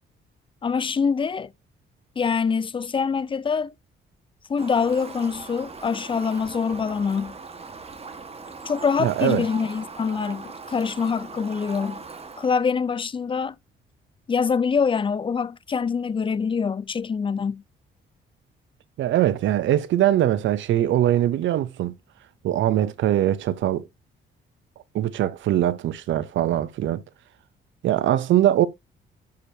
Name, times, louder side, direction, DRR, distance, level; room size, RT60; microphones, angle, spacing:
voice 1, 0.6-1.5 2.2-3.7 4.5-7.3 8.6-12.0 12.4-13.6 14.3-17.6, left 5 dB, 25° left, 0.5 m, -25 dB
Fowl, 4.6-12.6, right 4 dB, 30° right, 1.5 m, -39 dB
voice 2, 9.0-9.4 19.0-21.9 22.4-23.8 24.9-27.0 27.8-28.7, right 12 dB, 75° right, 0.7 m, -22 dB
10.5 x 5.0 x 2.7 m
cardioid pair, 90°, 20 cm